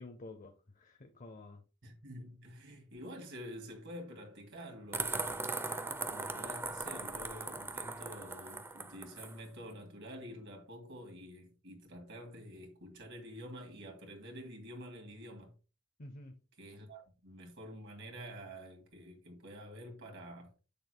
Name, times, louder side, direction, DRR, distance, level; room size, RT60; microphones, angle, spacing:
voice 1, 0.0-1.6 16.0-16.4, left 2 dB, 35° left, 0.7 m, -50 dB
voice 2, 1.8-5.4 6.1-15.5 16.6-20.5, equal, 55° right, 2.3 m, -48 dB
sound 1, 4.9-9.3, right 3 dB, 10° right, 0.5 m, -39 dB
8.2 x 6.6 x 2.2 m
head